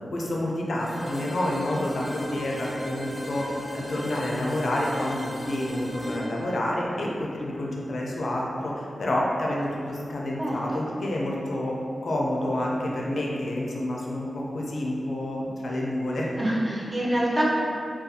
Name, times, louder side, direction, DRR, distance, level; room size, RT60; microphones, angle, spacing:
voice 1, 0.0-11.8 12.0-16.3, left 1 dB, 65° left, -3 dB, 0.4 m, -29 dB
sound 1, 0.8-8.6, equal, 20° left, 0.5 m, -38 dB
voice 2, 10.4-10.8 16.4-17.5, right 1 dB, 30° right, -6 dB, 0.5 m, -26 dB
2.4 x 2.3 x 2.6 m, 2.6 s
wide cardioid pair, 100°, 0 cm